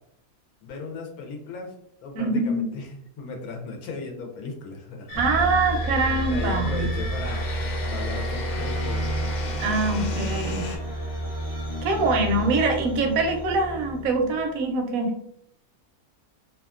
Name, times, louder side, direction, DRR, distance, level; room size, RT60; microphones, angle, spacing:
voice 1, 0.6-1.7 2.0-2.9 3.2-5.1 6.1-7.4 7.9-9.2, left 4 dB, 70° left, 1 dB, 1.0 m, -36 dB
voice 2, 2.1-2.7 5.2-6.9 9.6-10.7 11.8-15.1, right 3 dB, 70° right, 4 dB, 0.9 m, -24 dB
sound 1, 5.1-10.8, left 2 dB, 90° left, 1.2 m, -35 dB
sound 2, 5.1-14.6, right 1 dB, 10° left, 0.8 m, -30 dB
2.8 x 2.3 x 2.3 m, 0.71 s
omnidirectional pair, 1.7 m